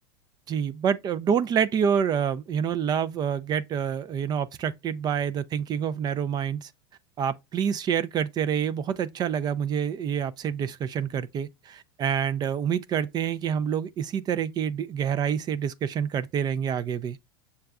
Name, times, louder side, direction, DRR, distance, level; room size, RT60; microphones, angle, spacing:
voice 1, 0.5-6.7 7.2-17.2, right 8 dB, 30° right, 0.4 m, -27 dB
6.7 x 2.3 x 2.2 m
hypercardioid pair, 95°, 13 cm